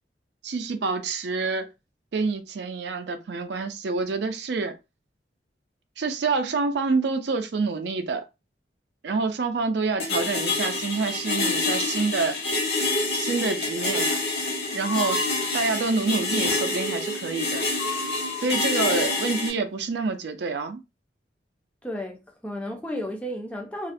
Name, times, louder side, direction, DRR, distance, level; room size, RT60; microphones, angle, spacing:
voice 1, 0.4-1.7 2.1-4.8 6.0-8.2 9.0-12.4 13.1-14.2 14.7-15.2 15.5-17.6 18.4-20.8, right 4 dB, 70° right, 0.4 m, -27 dB
sound 1, 10.0-19.5, left 2 dB, 60° left, 1.0 m, -27 dB
Breathing, 14.7-15.9 16.3-17.0 17.7-18.8, left 3 dB, 85° left, 0.3 m, -35 dB
voice 2, 21.8-23.9, left 1 dB, 5° left, 0.4 m, -33 dB
2.4 x 2.1 x 2.5 m
head